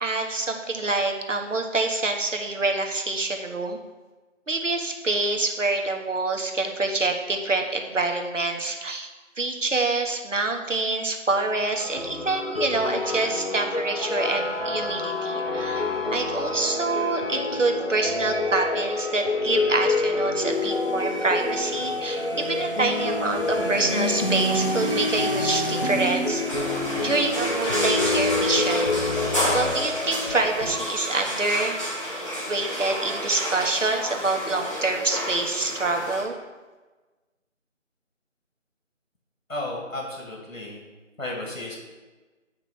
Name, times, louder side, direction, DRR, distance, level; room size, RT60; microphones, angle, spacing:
voice 1, 0.0-3.8 4.5-9.1 9.4-15.8 16.1-26.4 27.0-29.0 29.5-31.8 32.5-36.3, right 3 dB, 70° right, 3 dB, 1.2 m, -26 dB
sound 1, 11.8-30.7, left 2 dB, 50° left, 1.0 m, -27 dB
sound 2, 20.5-29.8, right 1 dB, 45° right, 0.6 m, -39 dB
sound 3, 26.5-36.2, equal, 25° left, 1.4 m, -30 dB
voice 2, 39.5-40.8 41.2-41.8, left 1 dB, 75° left, -2 dB, 2.1 m, -33 dB
8.7 x 2.9 x 6.2 m, 1.2 s
figure-of-eight pair, 170°, 39 cm